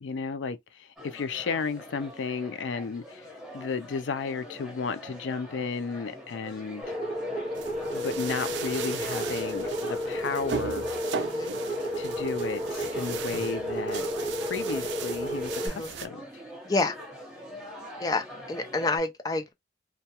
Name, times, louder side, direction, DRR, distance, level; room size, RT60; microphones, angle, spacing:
voice 1, 0.0-3.3 3.5-6.8 7.9-10.9 12.0-14.1 14.4-16.2, left 5 dB, 90° left, 0.4 m, -33 dB
sound 1, 1.0-19.0, left 1 dB, ahead, 1.2 m, -44 dB
sound 2, 6.8-15.7, equal, 25° right, 0.6 m, -32 dB
sound 3, 7.6-16.1, right 7 dB, 80° right, 0.4 m, -38 dB
voice 2, 11.1-11.5 15.6-15.9 16.6-17.0 18.0-19.5, left 3 dB, 20° left, 0.4 m, -29 dB
2.2 x 2.2 x 2.8 m
head